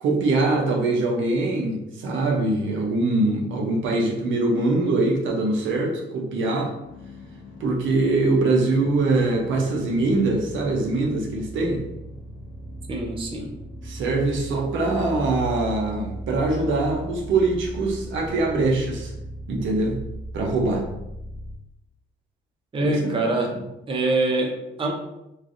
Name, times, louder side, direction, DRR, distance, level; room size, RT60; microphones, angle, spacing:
voice 1, 0.0-6.7 7.6-11.8 13.8-19.1 19.5-20.0 20.3-20.9 22.8-23.1, right 2 dB, 75° right, 1 dB, 0.7 m, -23 dB
sound 1, 6.8-21.6, right 1 dB, 50° left, 0.7 m, -38 dB
voice 2, 12.9-13.5 22.7-23.5 23.9-24.9, right 2 dB, 25° right, 1 dB, 0.5 m, -24 dB
3.1 x 2.4 x 2.5 m, 0.88 s
cardioid pair, 90°, 20 cm